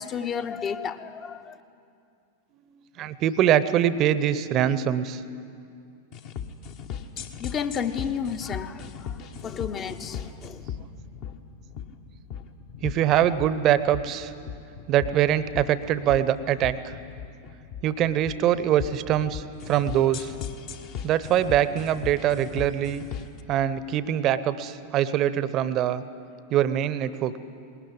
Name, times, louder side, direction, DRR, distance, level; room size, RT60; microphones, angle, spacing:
voice 1, 0.0-1.6 7.4-9.2 9.4-10.6, left 7 dB, 25° left, 10 dB, 0.9 m, -32 dB
voice 2, 3.0-5.2 12.8-14.3 14.9-17.0 17.8-20.3 21.0-23.0 23.5-26.0 26.5-27.4, right 11 dB, 35° right, 15 dB, 0.8 m, -23 dB
sound 1, 6.1-23.4, left 8 dB, 45° left, 1.2 m, -38 dB
20.0 x 19.0 x 9.6 m, 2.5 s
figure-of-eight pair, 90°, 0 cm